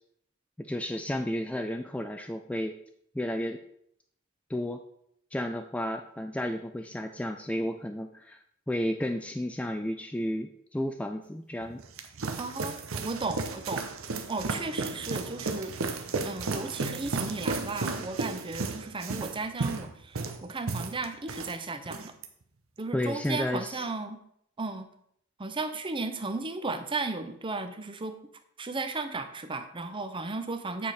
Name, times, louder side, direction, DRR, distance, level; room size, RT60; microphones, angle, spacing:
voice 1, 0.6-2.8 3.1-3.6 4.5-4.8 5.3-11.8 22.9-23.9, left 1 dB, 5° left, 6 dB, 0.3 m, -32 dB
sound 1, 11.6-21.5 21.8-22.3, right 3 dB, 80° right, 0.8 m, -34 dB
voice 2, 12.4-13.9 14.3-15.7 16.2-22.1 22.8-24.2 24.6-24.9 25.4-28.2 28.6-30.9, right 3 dB, 25° right, 8 dB, 0.7 m, -35 dB
8.4 x 5.0 x 4.2 m, 0.71 s
head